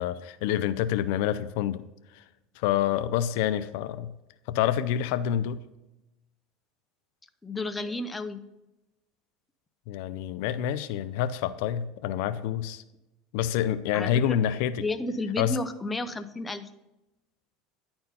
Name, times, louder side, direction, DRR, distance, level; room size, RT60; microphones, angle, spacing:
voice 1, 0.0-1.8 2.1-2.2 2.6-4.1 4.5-5.6 9.9-12.8 13.3-14.8 15.4-15.6, left 10 dB, 70° left, 14 dB, 0.4 m, -27 dB
voice 2, 7.4-8.4 13.9-14.4 14.8-16.7, left 2 dB, 15° left, 9 dB, 0.6 m, -32 dB
10.5 x 4.4 x 5.4 m, 0.96 s
supercardioid pair, 105°, 0 cm